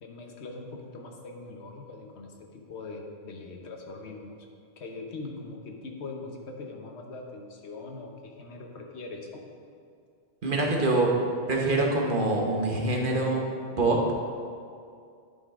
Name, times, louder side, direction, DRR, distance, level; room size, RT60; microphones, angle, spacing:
voice 1, 0.0-4.5 4.8-9.5, left 3 dB, 90° left, 2 dB, 1.2 m, -41 dB
voice 2, 10.4-11.1 11.5-13.4 13.8-14.0, right 2 dB, 55° right, 0 dB, 1.2 m, -24 dB
11.0 x 5.4 x 3.7 m, 2.3 s
omnidirectional pair, 1.1 m